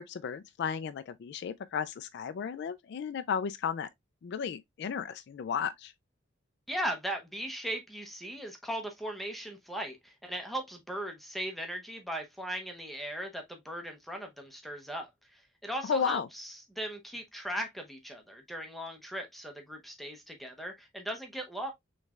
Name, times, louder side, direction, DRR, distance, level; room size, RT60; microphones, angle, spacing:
voice 1, 0.0-3.9 4.2-5.9 15.8-16.3, left 7 dB, 55° left, 0.3 m, -34 dB
voice 2, 6.7-21.7, right 1 dB, ahead, 0.7 m, -38 dB
6.3 x 3.1 x 2.3 m
head